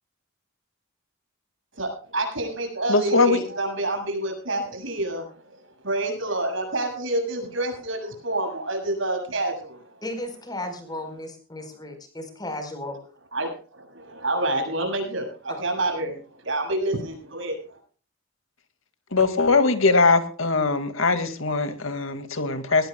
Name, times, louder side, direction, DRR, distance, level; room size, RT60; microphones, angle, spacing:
voice 1, 1.7-10.0 13.3-17.8, right 2 dB, 65° right, 3 dB, 7.5 m, -28 dB
voice 2, 2.9-3.4 19.1-22.9, left 3 dB, 80° left, 9 dB, 2.2 m, -21 dB
voice 3, 10.0-13.0 15.5-15.6, left 1 dB, 20° left, 6 dB, 4.5 m, -34 dB
21.5 x 18.5 x 2.3 m, 0.40 s
head